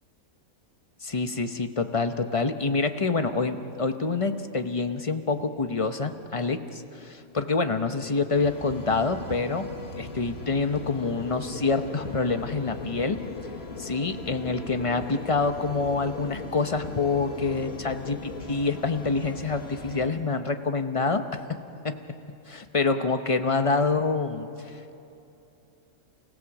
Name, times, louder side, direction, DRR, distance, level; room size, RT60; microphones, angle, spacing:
voice 1, 1.0-9.7 10.0-13.2 13.8-21.6 21.8-22.0 22.5-25.0, left 4 dB, 30° left, 8 dB, 0.8 m, -27 dB
sound 1, 8.3-20.1, left 2 dB, 50° left, 1.8 m, -40 dB
sound 2, 10.9-18.5, left 4 dB, 80° left, 1.6 m, -42 dB
29.5 x 16.5 x 7.2 m, 2.8 s
omnidirectional pair, 1.4 m